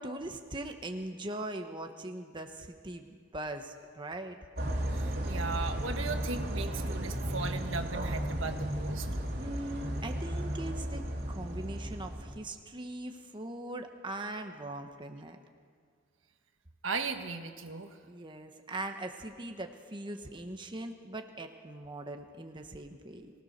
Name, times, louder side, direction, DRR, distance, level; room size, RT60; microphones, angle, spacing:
voice 1, 0.0-4.4 9.4-15.4 18.1-23.3, right 1 dB, 25° right, 5 dB, 1.3 m, -41 dB
sound 1, 4.6-12.4, right 1 dB, 55° right, 2.9 m, -34 dB
voice 2, 4.9-9.1 16.8-18.0, right 4 dB, 75° right, 6 dB, 1.5 m, -37 dB
24.0 x 18.0 x 6.7 m, 2.1 s
head